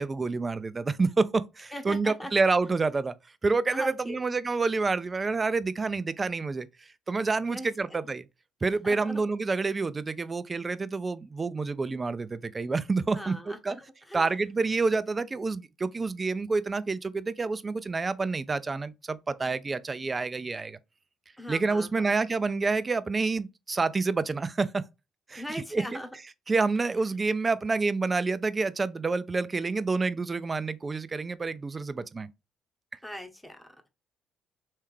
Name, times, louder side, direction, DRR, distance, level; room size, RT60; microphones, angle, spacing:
voice 1, 0.0-3.1 3.4-6.7 7.1-8.3 8.6-13.3 13.6-13.8 14.1-20.8 21.5-24.8 25.3-26.0 26.5-32.3, right 3 dB, 30° right, 0.5 m, -28 dB
voice 2, 1.7-2.3 3.7-4.2 7.5-8.1 8.8-9.2 13.1-14.3 21.4-22.2 25.4-26.1 33.0-33.9, equal, 5° left, 1.1 m, -40 dB
3.5 x 3.2 x 3.2 m
hypercardioid pair, 55°, 0 cm